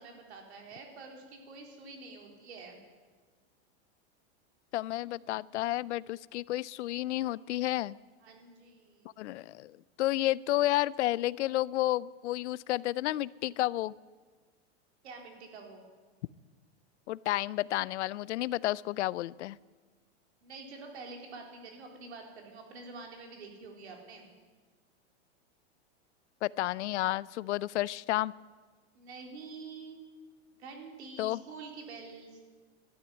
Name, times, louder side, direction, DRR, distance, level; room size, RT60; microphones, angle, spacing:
voice 1, 0.0-2.8 4.9-5.1 8.2-9.1 15.0-15.8 20.4-24.3 28.9-30.1 30.6-32.4, right 4 dB, 70° right, 2 dB, 3.9 m, -47 dB
voice 2, 4.7-8.0 9.2-9.7 10.0-13.9 17.1-19.6 26.4-28.3 31.2-31.4, left 15 dB, 90° left, 22 dB, 0.5 m, -31 dB
13.0 x 11.0 x 9.6 m, 1.4 s
supercardioid pair, 180°, 34 cm